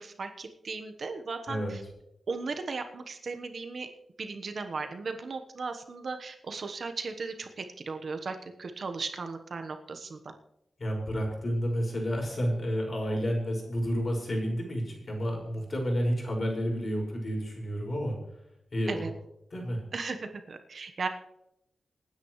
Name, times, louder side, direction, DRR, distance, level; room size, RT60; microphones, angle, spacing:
voice 1, 0.0-1.8 2.3-3.9 4.2-10.3 18.9-19.1 19.9-20.2 20.5-21.1, right 4 dB, 55° right, 7 dB, 1.2 m, -36 dB
voice 2, 10.8-18.2 18.7-19.1 19.5-19.8, equal, 45° left, 0 dB, 5.6 m, -30 dB
27.5 x 9.6 x 3.2 m, 0.83 s
wide cardioid pair, 100°, 0 cm